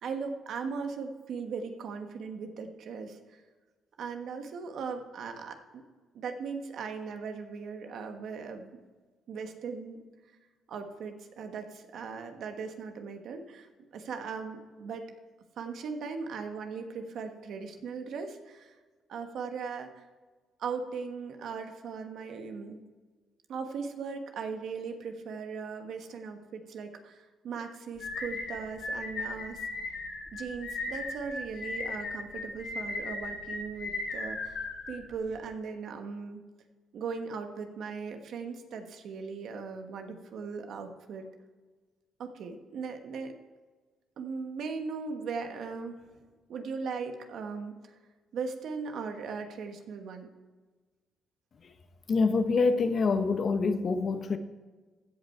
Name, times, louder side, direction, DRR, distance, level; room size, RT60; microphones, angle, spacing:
voice 1, 0.0-3.4 4.0-5.8 6.1-8.7 9.3-10.0 10.7-15.1 15.6-18.8 19.1-20.0 20.6-22.8 23.5-29.7 30.3-36.4 36.9-41.2 42.2-43.3 44.2-46.2 46.5-47.9 48.3-50.3, right 5 dB, 70° right, 5 dB, 1.3 m, -38 dB
sound 1, 28.0-35.4, left 2 dB, 70° left, 2.8 m, -37 dB
voice 2, 52.1-54.4, left 4 dB, 50° left, 9 dB, 0.9 m, -26 dB
15.5 x 5.4 x 4.5 m, 1.3 s
cardioid pair, 90°, 0 cm